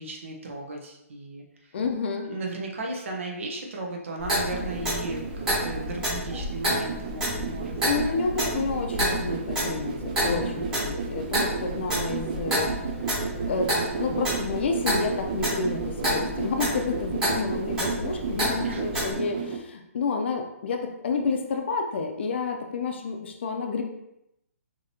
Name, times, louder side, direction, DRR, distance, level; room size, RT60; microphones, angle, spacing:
voice 1, 0.0-1.7 2.2-8.2 10.2-10.7 18.6-18.9, right 2 dB, 55° right, 1 dB, 1.0 m, -36 dB
voice 2, 1.7-2.3 7.8-9.9 10.2-12.7 13.5-13.7 14.0-23.8, left 4 dB, 50° left, 3 dB, 0.6 m, -29 dB
Clock, 4.2-19.1, equal, 10° right, 1.1 m, -30 dB
sound 1, 4.4-19.6, right 6 dB, 30° right, 0.4 m, -34 dB
4.9 x 2.9 x 2.8 m, 0.84 s
hypercardioid pair, 160°, 8 cm